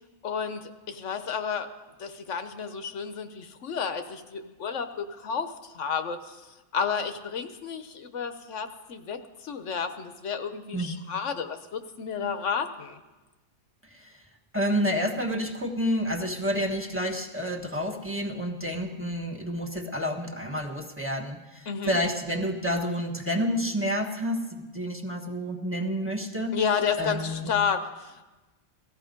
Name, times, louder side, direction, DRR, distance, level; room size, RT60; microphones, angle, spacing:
voice 1, 0.2-1.7 2.0-6.4 6.7-13.0 21.7-22.0 26.5-28.2, left 6 dB, 85° left, 8 dB, 1.3 m, -31 dB
voice 2, 14.5-26.6 27.0-27.5, equal, 10° right, 0 dB, 1.3 m, -29 dB
17.5 x 14.0 x 5.2 m, 1.2 s
omnidirectional pair, 1.2 m